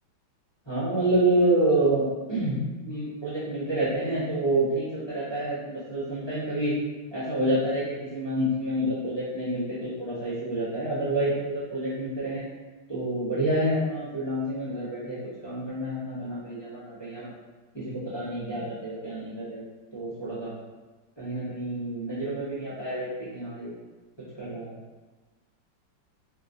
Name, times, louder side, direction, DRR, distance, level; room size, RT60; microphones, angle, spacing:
voice 1, 0.6-6.7 7.1-12.4 12.9-17.3 17.7-19.6 19.9-20.5 21.2-23.7 24.4-24.8, right 1 dB, 20° left, -13 dB, 0.6 m, -28 dB
3.9 x 2.3 x 2.6 m, 1.2 s
omnidirectional pair, 2.1 m